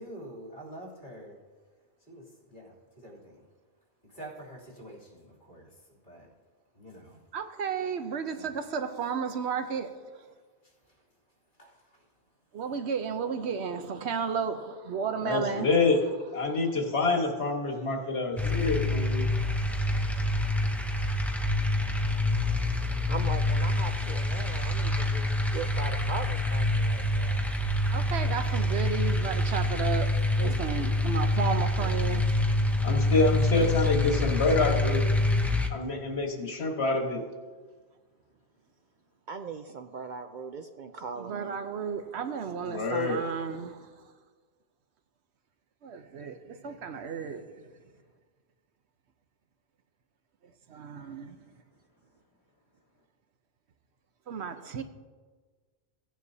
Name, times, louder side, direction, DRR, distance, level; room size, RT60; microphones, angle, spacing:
voice 1, 0.0-1.4 2.1-3.4 4.1-5.7 6.0-6.3 6.7-7.2 8.3-8.5 11.6-12.0, right 1 dB, 45° left, 3.1 m, -46 dB
voice 2, 7.3-10.1 12.5-15.7 27.9-32.3 34.3-34.4 41.2-43.9 45.8-47.7 50.7-51.4 54.3-54.8, right 6 dB, 80° right, 1.1 m, -33 dB
voice 3, 15.2-16.0 16.3-19.3 30.4-30.5 32.8-35.1 35.7-37.2 42.7-43.2, left 3 dB, 75° left, 1.7 m, -27 dB
sound 1, 18.4-35.7, left 2 dB, ahead, 0.6 m, -26 dB
voice 4, 23.1-27.5 39.3-41.6, right 5 dB, 55° right, 0.6 m, -39 dB
16.5 x 9.4 x 2.8 m
omnidirectional pair, 1.1 m